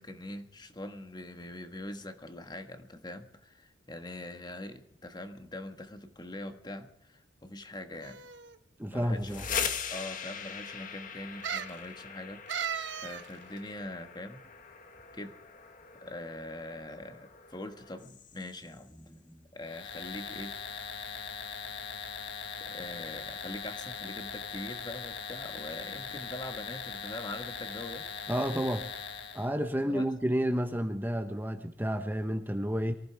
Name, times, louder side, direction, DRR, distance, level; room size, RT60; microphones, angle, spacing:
voice 1, 0.0-8.2 8.8-9.4 9.9-14.4 15.1-15.4 15.9-20.6 22.6-28.1 29.8-30.1, left 1 dB, 25° left, 7 dB, 1.4 m, -43 dB
sound 1, 8.0-8.6 9.4-9.5 9.8-9.9 11.4-11.8 12.5-13.3 13.6-13.7, right 8 dB, 85° right, 1.2 m, -36 dB
voice 2, 8.8-9.5 28.3-28.9 29.3-32.9, equal, 10° right, 6 dB, 1.0 m, -30 dB
sound 2, 9.1-18.8, left 6 dB, 45° left, 1.6 m, -41 dB
sound 3, 19.6-29.5, left 6 dB, 70° left, 1.6 m, -40 dB
23.5 x 15.0 x 3.4 m, 0.74 s
head